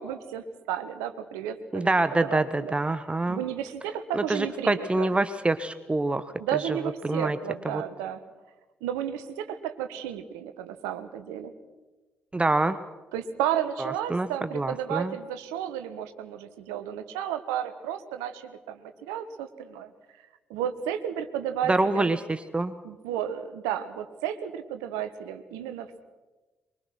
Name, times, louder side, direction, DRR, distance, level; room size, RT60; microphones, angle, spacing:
voice 1, 0.0-1.9 2.2-2.7 3.3-5.1 6.4-8.2 8.8-11.5 13.1-19.9 20.5-22.1 22.8-26.0, right 10 dB, 70° right, 9 dB, 1.4 m, -33 dB
voice 2, 1.7-3.4 4.1-6.3 6.6-6.8 7.0-7.4 7.6-7.8 12.3-12.8 13.8-14.3 14.5-15.1 21.7-22.7, right 2 dB, 20° right, 13 dB, 1.1 m, -26 dB
23.5 x 23.0 x 6.2 m, 1.2 s
figure-of-eight pair, 40°, 6 cm